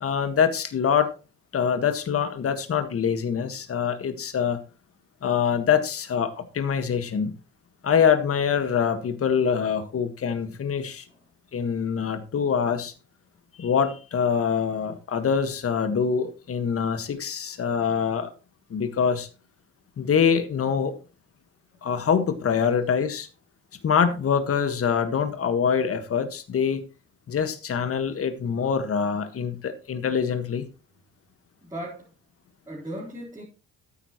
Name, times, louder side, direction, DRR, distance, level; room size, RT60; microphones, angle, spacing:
voice 1, 0.0-1.1 1.5-4.6 5.2-7.4 7.8-11.1 11.5-12.9 13.6-18.3 18.7-19.3 20.0-20.9 21.8-23.3 23.8-26.8 27.3-30.6, left 7 dB, 50° left, 1.6 m, -24 dB
voice 2, 31.6-32.1 32.7-33.4, right 1 dB, 15° right, 3.8 m, -37 dB
13.0 x 9.5 x 3.1 m
cardioid pair, 90°, 30 cm